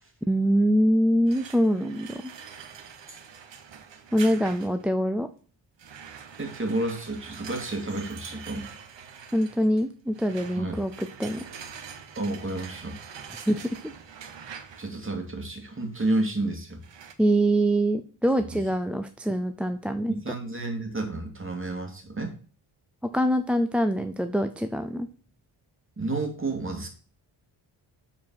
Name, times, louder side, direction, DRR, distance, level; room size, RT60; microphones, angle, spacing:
voice 1, 0.3-2.3 4.1-5.3 9.3-11.5 13.5-13.9 17.2-20.2 23.1-25.1, equal, 5° right, 8 dB, 0.4 m, -24 dB
sound 1, 1.3-4.9 5.8-15.1 16.8-17.1, right 7 dB, 60° right, 1.4 m, -44 dB
voice 2, 6.4-8.7 10.6-10.8 12.1-13.0 14.8-16.8 18.5-18.6 20.1-22.3 26.0-26.9, right 2 dB, 25° right, 2 dB, 2.5 m, -30 dB
7.4 x 4.7 x 5.6 m, 0.41 s
cardioid pair, 100°, 49 cm